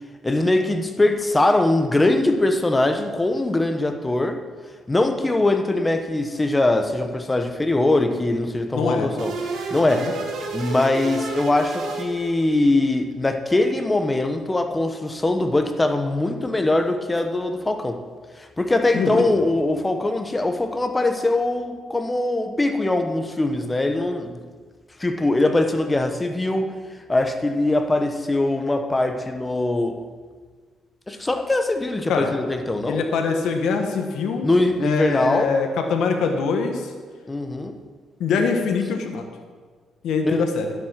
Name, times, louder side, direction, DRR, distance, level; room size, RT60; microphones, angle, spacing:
voice 1, 0.2-4.4 4.9-9.3 9.7-10.1 10.5-18.0 18.4-24.4 25.0-26.7 27.1-30.0 31.1-33.0 34.4-35.5 37.3-37.7 40.2-40.4, left 2 dB, 15° left, 6 dB, 1.1 m, -22 dB
voice 2, 8.7-9.1 9.9-10.1 18.9-19.2 32.1-32.3 32.8-34.5 34.8-36.9 38.2-39.3 40.0-40.7, left 5 dB, 80° left, 4 dB, 1.3 m, -23 dB
sound 1, 9.2-12.8, right 4 dB, 75° right, 1.7 m, -31 dB
11.5 x 7.9 x 5.9 m, 1.6 s
cardioid pair, 90°, 0 cm